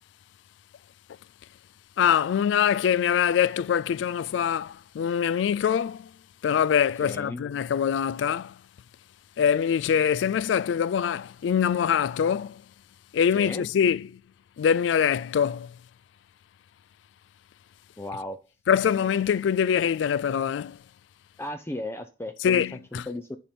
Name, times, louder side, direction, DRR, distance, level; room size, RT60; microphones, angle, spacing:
voice 1, 2.0-6.1 6.4-8.5 9.4-12.6 13.1-14.1 14.6-15.7 18.7-20.8 22.4-23.1, left 8 dB, 80° left, 0.3 m, -24 dB
voice 2, 7.0-7.4 13.3-13.7 18.0-18.4 21.4-22.6 22.9-23.4, left 1 dB, 15° left, 0.5 m, -35 dB
10.5 x 4.3 x 5.2 m
head